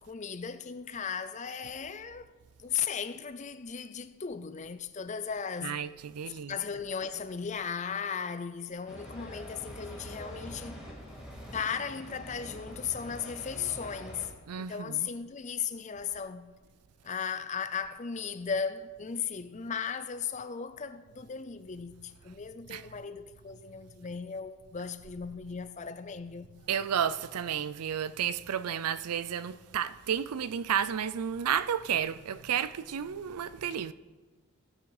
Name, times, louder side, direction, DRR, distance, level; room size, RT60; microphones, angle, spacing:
voice 1, 0.0-2.3 2.6-5.8 6.4-10.9 11.5-14.3 14.6-16.5 17.0-26.5, left 6 dB, 30° left, 0.5 m, -36 dB
voice 2, 5.6-6.5 14.5-15.1 22.7-22.8 26.7-33.9, right 8 dB, 90° right, 0.5 m, -32 dB
sound 1, 8.9-14.3, equal, 5° right, 2.0 m, -45 dB
16.5 x 6.2 x 4.9 m
head